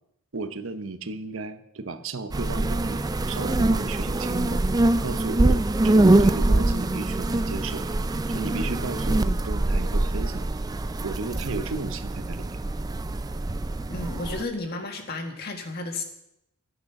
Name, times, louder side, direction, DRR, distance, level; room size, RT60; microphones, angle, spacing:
voice 1, 0.3-4.6 5.0-7.9 8.3-10.5 11.0-12.5, right 3 dB, 65° right, 10 dB, 0.9 m, -34 dB
sound 1, 2.3-14.4, right 2 dB, 20° right, 0.4 m, -24 dB
voice 2, 13.9-16.0, left 2 dB, 45° left, 4 dB, 1.8 m, -32 dB
13.0 x 9.3 x 5.9 m, 0.81 s
head